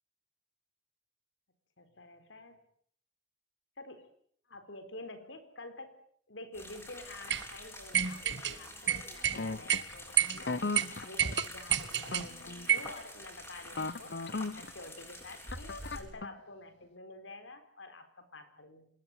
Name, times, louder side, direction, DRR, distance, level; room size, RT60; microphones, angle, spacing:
voice 1, 1.8-2.6 3.8-4.1 4.5-5.9 6.3-14.2 14.5-18.9, left 2 dB, 90° left, 9 dB, 4.3 m, -49 dB
sound 1, 6.5-16.0, left 1 dB, 15° left, 8.0 m, -48 dB
sound 2, 7.3-7.4 7.9-8.5 8.9-9.4 9.7-9.8 10.2-10.4 10.7-10.8 11.2-12.3 12.7-12.9, right 10 dB, 65° right, 1.8 m, -29 dB
sound 3, 9.3-9.9 10.4-11.4 12.0-12.9 13.7-14.7 15.5-16.4, left 3 dB, 65° left, 1.1 m, -37 dB
26.5 x 21.0 x 9.1 m, 0.63 s
head